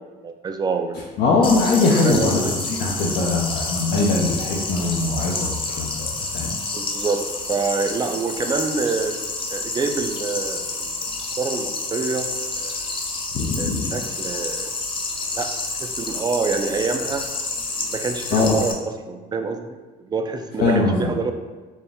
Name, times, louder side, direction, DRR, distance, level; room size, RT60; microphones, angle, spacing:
voice 1, 0.0-1.1 2.0-2.5 6.7-9.2 9.5-10.9 11.4-12.3 12.6-12.8 13.6-14.7 15.3-17.3 17.8-21.3, right 4 dB, 25° right, 6 dB, 0.3 m, -27 dB
voice 2, 1.2-2.4 2.7-6.6 13.3-13.9 18.3-18.6 20.6-21.1, left 3 dB, 70° left, -4 dB, 0.6 m, -21 dB
sound 1, 1.4-18.7, left 3 dB, 30° left, 0.6 m, -29 dB
4.2 x 2.4 x 3.5 m, 1.3 s
cardioid pair, 110°, 17 cm